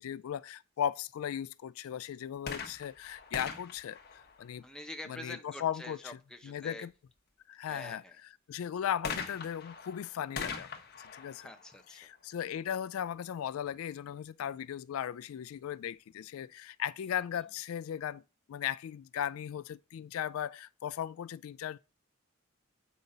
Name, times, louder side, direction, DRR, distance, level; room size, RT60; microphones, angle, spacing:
voice 1, 0.0-4.6 5.1-6.2 6.4-6.9 7.5-8.0 8.5-10.7 11.0-11.5 12.0-18.2 18.5-21.8, left 9 dB, 80° left, 0.3 m, -37 dB
sound 1, 2.4-5.0 9.0-12.7 13.5-13.6, left 5 dB, 50° left, 1.2 m, -42 dB
voice 2, 4.6-6.9 7.7-8.2 11.4-12.0, left 1 dB, 5° left, 0.8 m, -46 dB
8.2 x 5.5 x 3.9 m
head